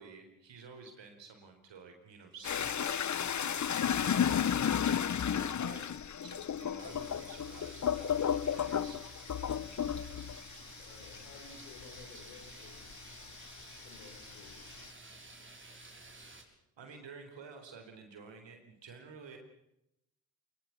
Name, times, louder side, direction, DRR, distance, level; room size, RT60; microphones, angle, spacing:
voice 1, 0.0-5.9 6.2-9.6 15.4-15.9 16.8-19.4, right 5 dB, 65° right, 5 dB, 4.2 m, -52 dB
sound 1, 2.4-13.4 13.8-14.9, left 8 dB, 35° left, 0.9 m, -33 dB
sound 2, 6.8-16.4, right 2 dB, 25° right, 6.3 m, -52 dB
voice 2, 10.6-12.8 13.8-14.6, left 5 dB, 85° left, 3 dB, 6.1 m, -54 dB
22.0 x 21.0 x 7.4 m, 0.83 s
hypercardioid pair, 45°, 48 cm